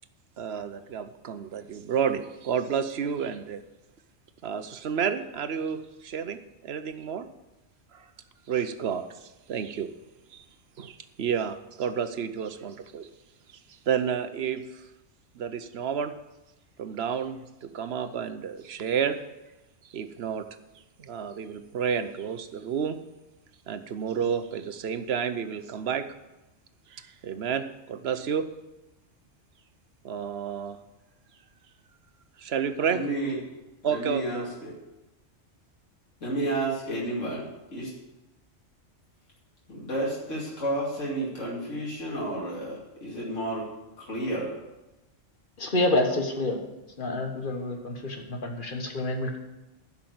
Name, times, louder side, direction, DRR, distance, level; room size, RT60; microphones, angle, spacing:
voice 1, 0.4-3.6 4.4-7.3 7.9-8.0 8.5-9.0 9.5-9.9 10.3-10.4 10.8-13.1 13.9-14.6 15.4-16.1 16.8-19.2 19.9-20.5 21.0-23.0 23.7-26.1 26.9-28.5 30.0-30.8 32.4-33.0 33.8-34.5, right 7 dB, 60° right, 10 dB, 0.9 m, -30 dB
voice 2, 32.8-33.4 33.8-34.7 36.2-37.9 39.7-43.6 44.0-44.6, right 1 dB, 75° left, -5 dB, 2.9 m, -31 dB
voice 3, 45.6-46.6 47.0-49.4, left 2 dB, 45° left, 4 dB, 1.5 m, -28 dB
11.0 x 5.8 x 7.7 m, 0.99 s
omnidirectional pair, 1.3 m